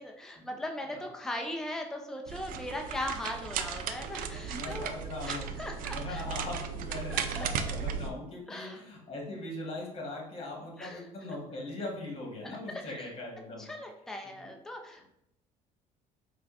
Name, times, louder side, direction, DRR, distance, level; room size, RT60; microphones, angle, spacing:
voice 1, 0.0-4.9 5.2-6.2 7.1-7.5 8.5-8.8 10.8-11.1 12.4-13.1 13.6-15.0, left 1 dB, 5° left, 2 dB, 0.5 m, -39 dB
sound 1, 2.3-8.1, right 7 dB, 60° right, 0.4 m, -36 dB
voice 2, 4.3-13.7 14.2-14.4, left 2 dB, 35° left, -1 dB, 1.4 m, -40 dB
4.9 x 2.3 x 2.5 m, 0.80 s
supercardioid pair, 80°, 17 cm